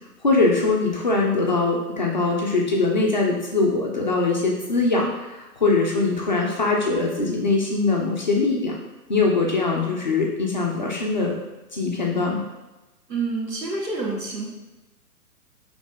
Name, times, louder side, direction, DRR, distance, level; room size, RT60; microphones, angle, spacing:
voice 1, 0.2-8.8 9.1-11.3 11.7-12.4, left 3 dB, 30° left, -2 dB, 0.4 m, -22 dB
voice 2, 13.1-14.5, right 3 dB, 85° right, -2 dB, 1.3 m, -28 dB
4.0 x 3.2 x 3.3 m, 1.1 s
figure-of-eight pair, 130°, 47 cm